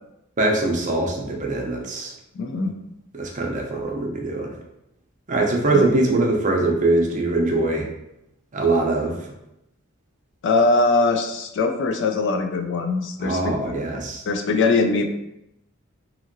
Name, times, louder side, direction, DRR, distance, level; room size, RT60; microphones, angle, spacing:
voice 1, 0.4-2.1 3.1-4.5 5.3-7.9 8.5-9.2 13.2-14.2, right 2 dB, 35° right, 0 dB, 0.5 m, -22 dB
voice 2, 2.4-2.7 5.7-5.8 10.4-13.5 14.3-15.1, left 3 dB, 60° left, 5 dB, 0.3 m, -21 dB
2.8 x 2.6 x 2.6 m, 0.84 s
head